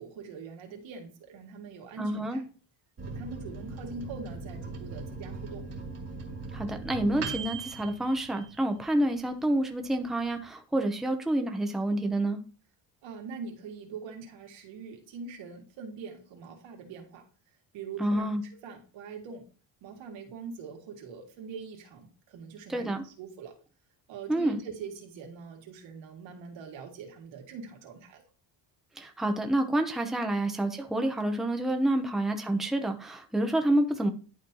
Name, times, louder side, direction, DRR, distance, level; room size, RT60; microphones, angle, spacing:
voice 1, 0.0-2.5 3.1-5.7 13.0-17.2 17.7-19.5 19.8-23.6 24.1-28.2 30.2-30.3, right 5 dB, 85° right, 2 dB, 2.2 m, -43 dB
voice 2, 2.0-2.4 6.5-12.4 18.0-18.4 22.7-23.0 24.3-24.6 29.0-34.1, right 1 dB, ahead, 4 dB, 0.7 m, -28 dB
Microwave oven, 3.0-9.1 9.5-9.6 9.8-10.5, right 3 dB, 35° right, 1.8 m, -39 dB
11.5 x 4.3 x 2.8 m, 0.37 s
cardioid pair, 145°, 44 cm